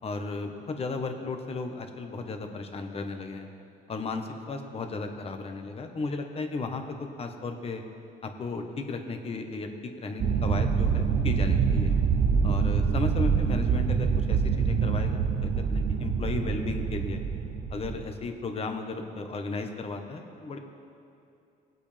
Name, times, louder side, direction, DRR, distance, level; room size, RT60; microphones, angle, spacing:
voice 1, 0.0-3.5 3.9-7.8 8.2-9.7 10.0-11.9 12.4-17.2 17.7-20.6, left 3 dB, 35° left, 5 dB, 1.2 m, -35 dB
sound 1, 10.2-18.1, right 6 dB, 50° right, 0.8 m, -25 dB
20.0 x 8.2 x 3.4 m, 2.6 s
cardioid pair, 110°, 17 cm